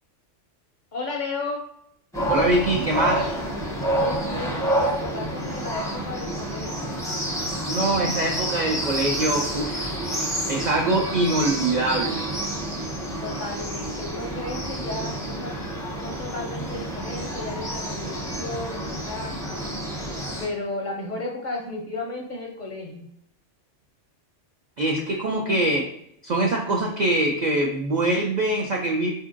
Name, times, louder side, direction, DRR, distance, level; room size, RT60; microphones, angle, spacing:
voice 1, 0.9-1.7 3.9-7.0 13.2-15.6 16.0-19.7 20.4-23.1, left 2 dB, 55° left, 0 dB, 0.5 m, -34 dB
sound 1, 2.1-20.5, right 1 dB, 5° left, 0.4 m, -29 dB
voice 2, 2.3-3.4 7.7-12.3 24.8-25.9 26.2-29.1, right 2 dB, 65° right, 0 dB, 0.4 m, -24 dB
4.2 x 2.7 x 2.5 m, 0.71 s
omnidirectional pair, 1.2 m